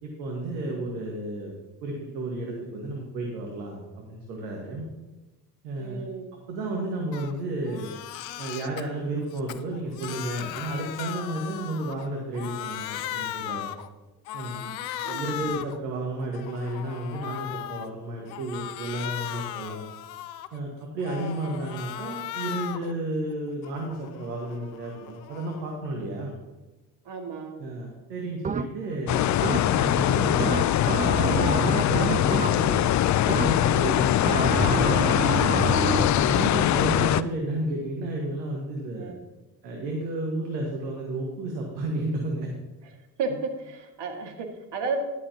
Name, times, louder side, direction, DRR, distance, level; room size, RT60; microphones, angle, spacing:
voice 1, 0.0-1.5 1.8-4.9 5.6-6.0 6.5-7.9 8.4-13.6 14.3-14.7 15.1-19.9 20.5-26.4 27.6-30.5 31.0-32.9 33.3-35.4 36.1-39.1 39.6-42.5, right 2 dB, 80° right, 0 dB, 1.7 m, -32 dB
voice 2, 5.8-6.3 15.0-15.3 27.1-27.7 38.9-39.2 42.8-42.9 43.2-45.0, right 4 dB, 55° right, 4 dB, 2.1 m, -33 dB
Crying sobbing, 7.1-7.3 7.7-8.8 9.3-12.1 12.3-13.9 14.3-15.8 16.2-17.9 18.3-20.6 21.0-22.9 23.3-25.7, left 12 dB, 80° left, 0.7 m, -37 dB
sound 1, 28.4-29.0 29.4-30.0 30.4-32.9 33.3-33.8 34.3-36.2, right 6 dB, 15° right, 0.5 m, -29 dB
sound 2, 29.1-37.2, left 12 dB, 40° left, 0.5 m, -22 dB
14.0 x 11.5 x 2.9 m, 1.1 s
hypercardioid pair, 50°, 49 cm